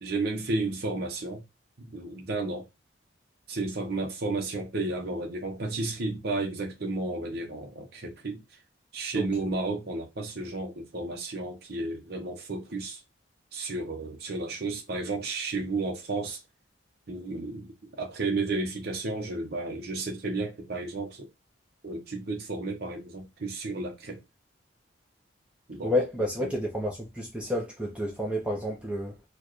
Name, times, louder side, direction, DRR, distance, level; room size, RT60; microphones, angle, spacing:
voice 1, 0.0-1.4 1.8-2.7 3.5-8.4 8.9-13.0 13.5-16.4 17.1-21.3 21.8-24.2 25.7-25.9, right 3 dB, 50° right, 0.8 m, -32 dB
voice 2, 9.1-9.5 25.8-29.2, left 1 dB, 5° right, 0.6 m, -30 dB
4.4 x 2.3 x 3.0 m
head